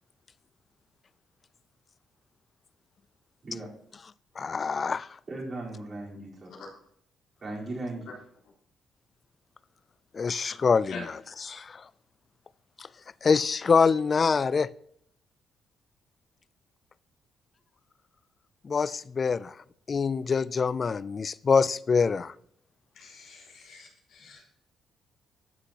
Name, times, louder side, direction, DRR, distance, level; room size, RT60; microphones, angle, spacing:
voice 1, 4.4-5.1 10.1-11.1 11.5-11.8 12.8-12.9 13.2-14.7 18.6-19.5 19.9-22.3, left 5 dB, 40° left, 0.3 m, -25 dB
voice 2, 5.3-6.5 7.4-8.1, right 2 dB, 40° right, 3.9 m, -37 dB
voice 3, 22.9-24.4, left 3 dB, 75° left, 3.5 m, -44 dB
13.0 x 6.0 x 2.9 m
cardioid pair, 90°, 0 cm